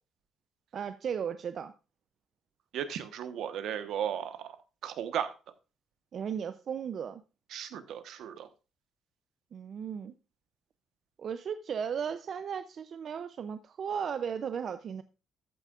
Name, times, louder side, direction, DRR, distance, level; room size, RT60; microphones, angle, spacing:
voice 1, 0.7-1.7 6.1-7.2 9.5-10.1 11.2-15.0, right 7 dB, 40° right, 0.5 m, -35 dB
voice 2, 2.7-4.6 4.8-5.3 7.5-8.5, right 9 dB, 70° right, 1.1 m, -35 dB
13.0 x 9.0 x 2.4 m
cardioid pair, 175°, 0 cm